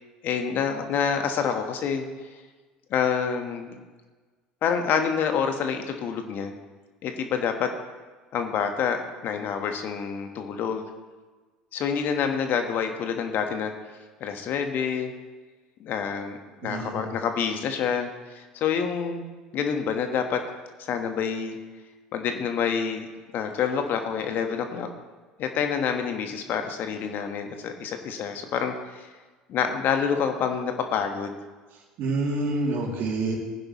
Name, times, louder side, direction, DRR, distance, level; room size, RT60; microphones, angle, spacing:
voice 1, 0.2-2.0 2.9-3.8 4.6-6.5 7.0-7.7 8.3-10.8 11.7-13.9 14.2-15.1 15.8-16.4 16.6-19.2 19.5-20.4 20.8-21.6 22.1-23.1 23.3-24.9 25.4-29.1 29.5-31.3, left 7 dB, 50° left, 6 dB, 1.4 m, -27 dB
voice 2, 16.6-17.1 32.0-33.4, right 2 dB, 55° right, 0 dB, 3.0 m, -27 dB
18.5 x 10.5 x 3.2 m, 1.3 s
hypercardioid pair, 65°, 4 cm